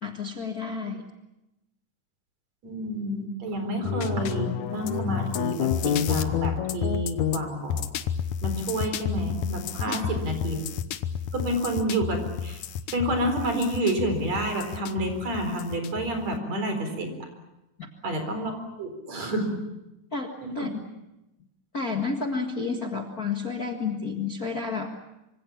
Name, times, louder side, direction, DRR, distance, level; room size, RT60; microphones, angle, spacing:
voice 1, 0.0-1.0 9.9-10.1 17.8-17.9 20.1-20.8 21.7-25.0, left 4 dB, 35° left, 2 dB, 1.6 m, -31 dB
voice 2, 2.6-7.9 8.4-10.6 11.3-12.6 12.9-17.1 18.0-19.6 20.4-20.7, right 1 dB, 55° right, 6 dB, 5.4 m, -29 dB
sound 1, 3.8-16.4, left 9 dB, 70° left, 2.2 m, -30 dB
26.0 x 25.5 x 7.2 m, 0.93 s
omnidirectional pair, 3.8 m